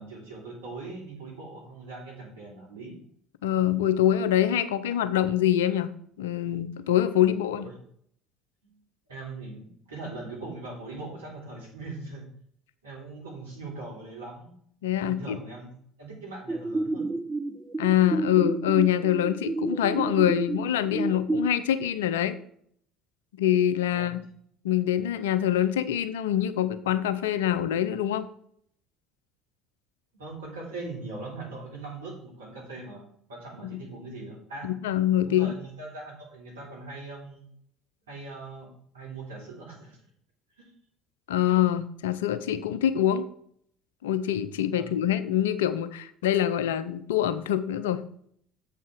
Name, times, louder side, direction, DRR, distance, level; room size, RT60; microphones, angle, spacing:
voice 1, 0.0-3.0 7.6-7.7 8.6-8.8 9.1-12.2 12.8-14.6 15.0-15.7 16.0-17.1 23.9-24.2 30.1-34.7 35.2-37.4 38.1-40.0 40.6-40.7 44.7-44.9, right 3 dB, 85° right, -3 dB, 3.4 m, -41 dB
voice 2, 3.4-5.9 6.2-7.7 14.8-15.4 17.8-22.4 23.4-24.2 24.6-28.3 34.6-35.5 41.3-43.3 44.0-48.0, left 11 dB, 80° left, 13 dB, 0.6 m, -25 dB
sound 1, 16.5-21.5, right 2 dB, 20° right, 0.6 m, -30 dB
7.6 x 5.5 x 6.0 m, 0.65 s
hypercardioid pair, 65°, 0 cm